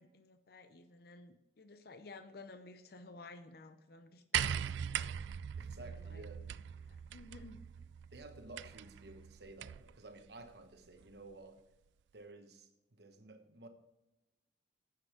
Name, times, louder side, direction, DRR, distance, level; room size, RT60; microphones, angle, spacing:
voice 1, 0.0-4.8 5.8-6.3 6.8-7.6, left 3 dB, 55° left, 0.7 m, -54 dB
sound 1, 4.3-9.9 11.0-11.1, right 9 dB, 75° right, 0.3 m, -40 dB
voice 2, 5.6-6.5 8.1-11.6 12.1-13.7, right 2 dB, 60° right, 1.2 m, -53 dB
9.8 x 7.7 x 5.0 m
head